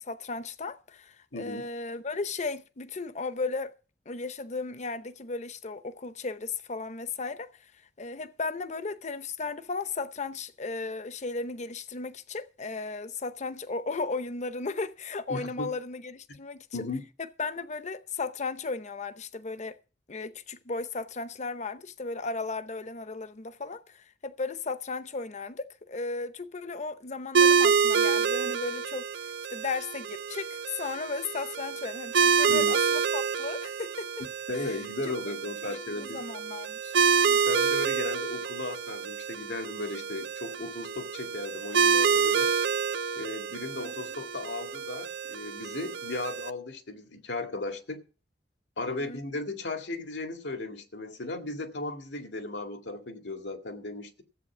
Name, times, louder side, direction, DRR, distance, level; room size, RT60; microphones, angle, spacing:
voice 1, 0.0-3.7 4.1-7.7 8.0-16.7 17.4-19.8 20.1-29.1 29.5-34.1 34.5-34.8 35.1-35.3 35.6-36.9 37.2-37.6 43.8-43.9 48.9-49.2, left 3 dB, 40° left, 0.8 m, -35 dB
voice 2, 1.3-1.7 15.3-15.7 16.7-17.0 32.5-32.8 34.5-36.2 37.5-42.5 43.2-48.0 48.8-54.2, left 2 dB, 90° left, 2.0 m, -36 dB
sound 1, 27.3-46.5, right 6 dB, 70° right, 0.6 m, -27 dB
14.0 x 8.4 x 6.1 m
head